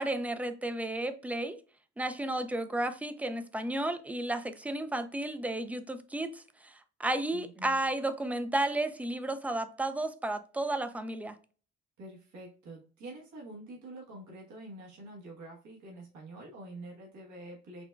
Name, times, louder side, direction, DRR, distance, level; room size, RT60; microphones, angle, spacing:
voice 1, 0.0-1.6 2.0-6.7 7.0-11.3, right 1 dB, 5° right, 0.3 m, -33 dB
voice 2, 7.3-7.8 12.0-17.8, right 1 dB, 70° right, 1.2 m, -47 dB
5.7 x 2.2 x 2.3 m
cardioid pair, 90°, 30 cm